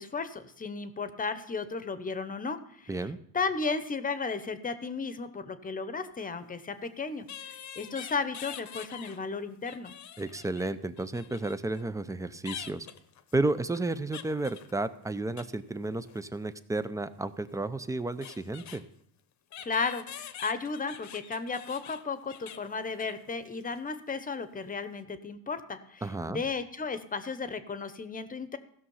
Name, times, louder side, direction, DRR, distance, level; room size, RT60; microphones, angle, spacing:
voice 1, 0.0-3.1 3.3-9.9 19.6-28.6, left 4 dB, 20° left, 11 dB, 0.9 m, -34 dB
sound 1, 6.4-6.5 7.3-9.2 9.5-11.8 12.4-15.5 15.8-16.3 17.5-17.6 17.8-18.8 19.5-23.3 23.6-23.8 24.1-24.3, left 9 dB, 45° left, 0.9 m, -45 dB
voice 2, 10.2-12.9 13.3-18.8 26.0-26.4, right 2 dB, 10° right, 13 dB, 0.5 m, -32 dB
15.5 x 6.3 x 5.6 m, 0.68 s
cardioid pair, 110°, 39 cm